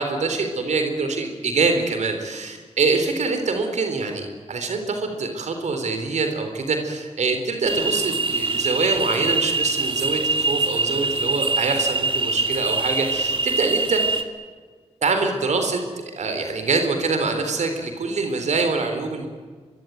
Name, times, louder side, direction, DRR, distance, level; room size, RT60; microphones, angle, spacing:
voice 1, 0.0-14.2 15.0-19.3, right 3 dB, 85° right, 6 dB, 3.7 m, -24 dB
sound 1, 7.6-14.2, right 3 dB, 50° right, 2.3 m, -24 dB
25.0 x 22.5 x 9.3 m, 1.5 s
wide cardioid pair, 85°, 12 cm